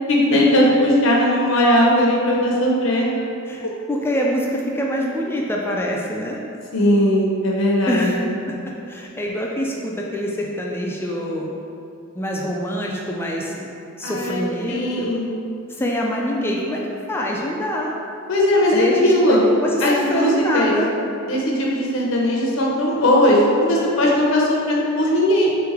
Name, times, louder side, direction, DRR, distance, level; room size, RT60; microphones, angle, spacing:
voice 1, 0.1-3.3 6.7-8.3 14.0-15.3 18.3-19.4 19.8-20.8 21.2-25.6, left 1 dB, 65° left, -3 dB, 0.6 m, -18 dB
voice 2, 3.5-6.4 7.9-8.2 8.5-8.6 8.9-11.5 12.2-15.1 15.7-16.8 17.1-17.9 18.7-20.9, equal, 10° left, -2 dB, 0.3 m, -25 dB
3.8 x 3.2 x 3.5 m, 2.6 s
head